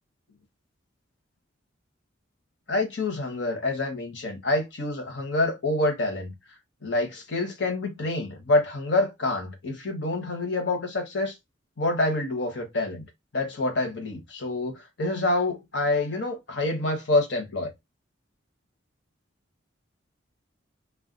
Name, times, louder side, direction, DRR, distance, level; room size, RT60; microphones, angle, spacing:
voice 1, 2.7-6.3 6.8-11.3 11.8-13.0 13.3-17.7, left 2 dB, 60° left, 1.0 m, -27 dB
2.4 x 2.2 x 3.6 m
head